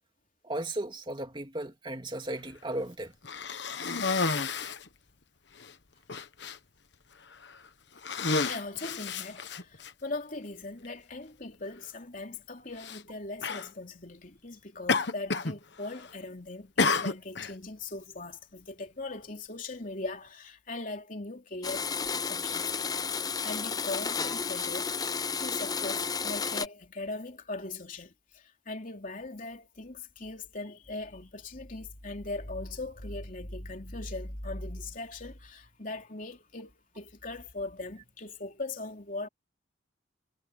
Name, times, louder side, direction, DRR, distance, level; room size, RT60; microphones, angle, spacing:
voice 1, 0.4-3.1, right 1 dB, 25° right, 2.7 m, -35 dB
Cough, 3.2-4.9 5.6-5.7 6.1-6.6 7.3-7.6 8.0-9.9 10.8-10.9 12.8-13.0 13.4-13.7 14.9-15.6 15.8-16.2 16.8-17.5, left 4 dB, 60° left, 1.3 m, -30 dB
voice 2, 8.4-21.9 22.3-22.8 23.1-24.9 25.4-39.3, left 2 dB, 45° left, 3.4 m, -40 dB
Domestic sounds home sounds, 21.6-26.7, left 5 dB, 20° left, 0.5 m, -32 dB
head